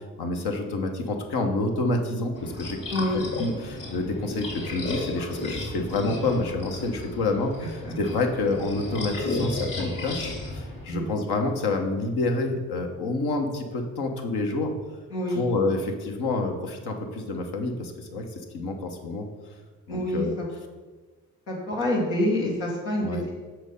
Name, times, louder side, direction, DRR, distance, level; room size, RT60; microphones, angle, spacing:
voice 1, 0.2-2.8 3.1-14.7 15.3-19.3 19.9-20.3 23.0-23.2, left 2 dB, 70° left, 3 dB, 1.1 m, -28 dB
sound 1, 2.3-10.8, left 2 dB, 55° left, 2.1 m, -33 dB
voice 2, 2.9-3.2 7.8-7.9 10.9-11.1 15.1-15.5 19.9-20.4 21.5-23.0, left 1 dB, 90° left, -3 dB, 1.7 m, -27 dB
6.2 x 4.3 x 5.2 m, 1.3 s
hypercardioid pair, 40°, 40 cm